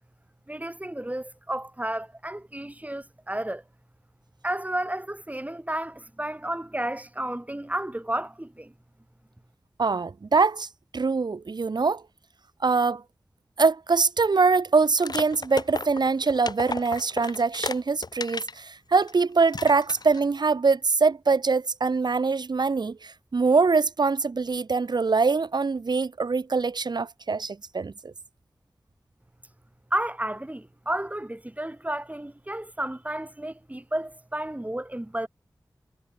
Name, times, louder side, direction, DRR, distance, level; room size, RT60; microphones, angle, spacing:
voice 1, 0.5-3.6 4.4-8.7 29.9-35.3, right 1 dB, 20° right, 6.1 m, -32 dB
voice 2, 9.8-10.7 10.9-12.0 12.6-13.0 13.6-28.1, right 4 dB, 85° right, 2.8 m, -23 dB
sound 1, 15.0-18.6 19.0-19.1 19.5-20.3, left 3 dB, 75° left, 3.9 m, -34 dB
cardioid pair, 40°, 7 cm